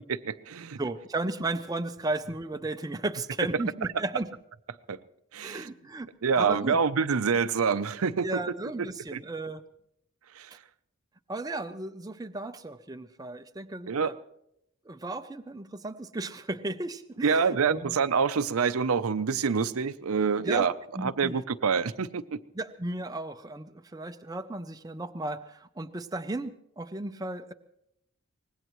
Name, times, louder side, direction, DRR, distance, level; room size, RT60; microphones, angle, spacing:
voice 1, 0.1-0.8 4.9-5.0 5.3-5.7 6.2-8.3 9.1-9.2 10.3-10.6 13.9-14.1 17.2-20.7 21.0-22.4, right 5 dB, 80° right, 12 dB, 0.6 m, -26 dB
voice 2, 0.8-4.3 5.4-6.1 6.4-6.8 8.2-9.6 11.3-14.1 14.9-17.9 20.4-20.6 21.0-21.4 22.5-27.5, right 2 dB, 15° right, 8 dB, 0.5 m, -35 dB
24.0 x 19.5 x 3.1 m, 0.77 s
head